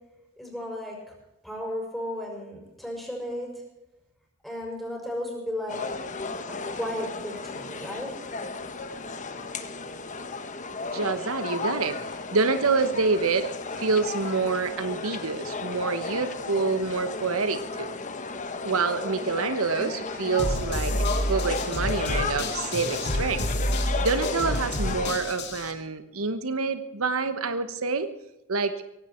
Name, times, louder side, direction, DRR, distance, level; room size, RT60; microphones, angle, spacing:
voice 1, 0.4-1.0 1.4-3.5 4.4-5.8 6.5-8.1, left 1 dB, ahead, -2 dB, 6.2 m, -34 dB
sound 1, 5.7-25.1, left 4 dB, 35° left, 1.3 m, -34 dB
voice 2, 10.9-12.0 12.3-13.5 13.8-17.9 18.6-23.4 24.0-28.1 28.5-28.8, right 4 dB, 80° right, 11 dB, 1.1 m, -27 dB
sound 2, 20.4-25.7, left 1 dB, 55° left, 2.5 m, -29 dB
17.5 x 17.0 x 4.4 m, 0.93 s
head